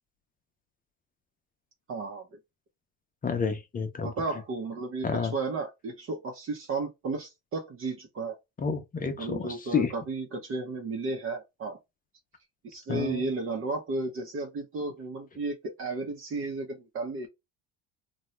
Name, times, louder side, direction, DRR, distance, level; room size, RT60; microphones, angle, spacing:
voice 1, 1.9-2.3 4.0-8.4 9.2-11.8 12.6-17.3, right 3 dB, 40° right, 0.8 m, -33 dB
voice 2, 3.2-4.1 5.0-5.3 8.6-9.9 12.9-13.2, left 6 dB, 25° left, 0.6 m, -29 dB
2.8 x 2.3 x 3.0 m
cardioid pair, 105°, 32 cm